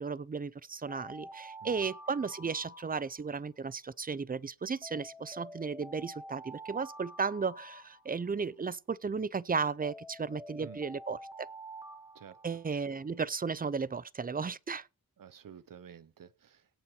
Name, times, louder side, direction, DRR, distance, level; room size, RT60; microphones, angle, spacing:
voice 1, 0.0-11.5 12.4-14.9, right 5 dB, 25° right, 0.5 m, -35 dB
Alarm, 0.9-3.5 4.8-8.5 9.8-13.0, right 1 dB, 10° right, 2.0 m, -48 dB
voice 2, 15.2-16.7, right 8 dB, 80° right, 0.9 m, -51 dB
17.0 x 5.9 x 4.8 m
wide cardioid pair, 75°, 33 cm